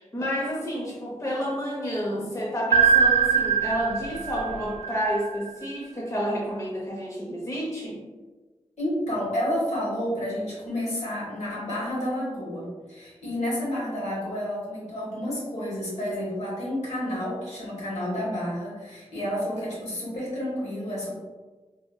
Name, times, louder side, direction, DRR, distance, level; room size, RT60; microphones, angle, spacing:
voice 1, 0.0-8.0, equal, 25° left, -4 dB, 0.9 m, -30 dB
sound 1, 2.7-5.6, right 6 dB, 70° right, 0.4 m, -22 dB
voice 2, 8.8-21.2, equal, 70° left, -6 dB, 1.5 m, -30 dB
3.4 x 2.9 x 2.3 m, 1.3 s
cardioid pair, 45°, 12 cm